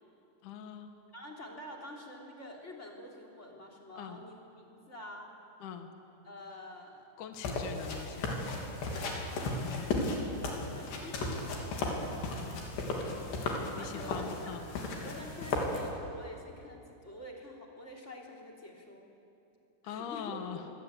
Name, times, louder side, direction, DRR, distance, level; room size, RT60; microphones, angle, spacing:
voice 1, 0.4-0.9 4.0-4.2 5.6-5.9 7.2-8.4 9.7-9.9 13.7-14.6 19.8-20.6, left 8 dB, 60° left, 6 dB, 2.5 m, -42 dB
voice 2, 1.1-5.3 6.2-7.1 8.1-9.5 10.7-14.5 15.0-19.0 19.8-20.7, left 1 dB, 20° left, 1 dB, 3.2 m, -48 dB
sound 1, 7.4-15.9, left 2 dB, 80° left, 5.4 m, -35 dB
27.5 x 23.0 x 9.0 m, 2.8 s
omnidirectional pair, 4.9 m